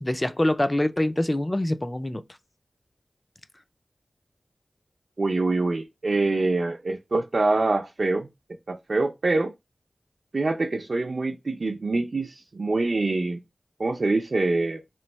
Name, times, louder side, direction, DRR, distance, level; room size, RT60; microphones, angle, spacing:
voice 1, 0.0-2.2, left 1 dB, 20° left, 0.4 m, -25 dB
voice 2, 5.2-8.3 8.7-9.5 10.3-13.4 13.8-14.8, right 3 dB, 60° right, 0.5 m, -25 dB
3.1 x 2.6 x 4.2 m
wide cardioid pair, 75°, 0 cm